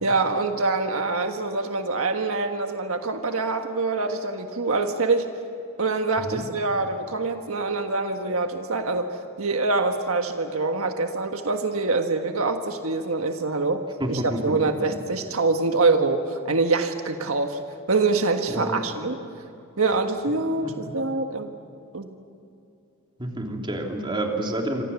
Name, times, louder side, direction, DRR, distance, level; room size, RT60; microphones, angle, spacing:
voice 1, 0.0-5.3 5.8-13.8 14.1-17.6 17.9-19.2 19.8-21.6 21.9-22.2, right 3 dB, 80° right, 5 dB, 1.6 m, -25 dB
voice 2, 14.0-14.6 18.5-18.8 20.6-20.9 23.2-24.8, right 1 dB, 25° right, 1 dB, 3.3 m, -29 dB
27.0 x 25.5 x 7.2 m, 2.6 s
head